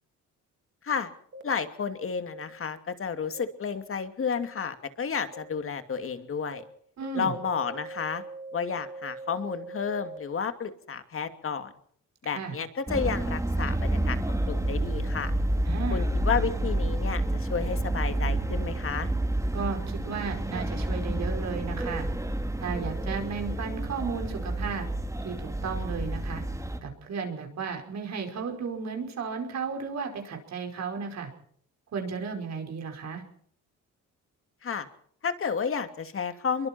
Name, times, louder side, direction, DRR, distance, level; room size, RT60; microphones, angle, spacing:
sound 1, 1.3-1.4 2.3-2.4 3.3-3.4 4.4-4.5 5.3-5.4 6.0-6.1 6.5-6.6 7.0-10.2, right 2 dB, 40° right, 2.9 m, -41 dB
voice 1, 1.4-6.6 7.1-8.2 8.5-11.7 12.2-14.2 14.5-15.3 15.9-19.1 34.6-34.9 35.2-36.7, left 6 dB, 45° left, 8 dB, 2.6 m, -31 dB
voice 2, 7.0-7.3 12.3-12.6 15.6-16.0 19.5-22.1 22.6-24.9 25.2-26.4 26.8-31.3 31.9-33.2, right 5 dB, 60° right, 4 dB, 5.2 m, -34 dB
sound 2, 12.9-26.8, right 1 dB, 10° right, 2.8 m, -29 dB
25.0 x 23.0 x 4.5 m, 0.63 s
cardioid pair, 90°, 30 cm